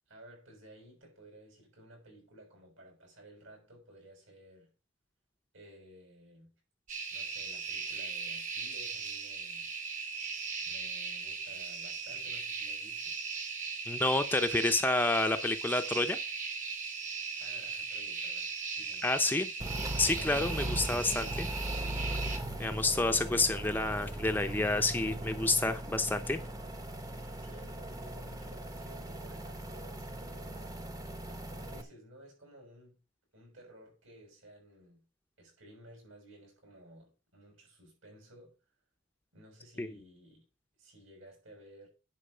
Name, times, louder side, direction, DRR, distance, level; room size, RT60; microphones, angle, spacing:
voice 1, 0.1-4.7 5.5-6.5 7.1-9.7 10.6-13.2 17.4-19.5 27.4-30.7 31.5-33.0 33.3-35.1 35.4-38.6 39.3-40.4 40.8-41.9, right 1 dB, 70° right, 6.5 m, -55 dB
sound 1, 6.9-22.4, right 5 dB, 40° right, 1.4 m, -38 dB
voice 2, 13.9-16.2 19.0-19.5 20.0-21.5 22.6-26.4 39.8-39.9, left 2 dB, 10° left, 0.6 m, -29 dB
sound 2, 19.6-31.8, right 1 dB, 20° right, 0.8 m, -39 dB
10.0 x 4.6 x 6.6 m
head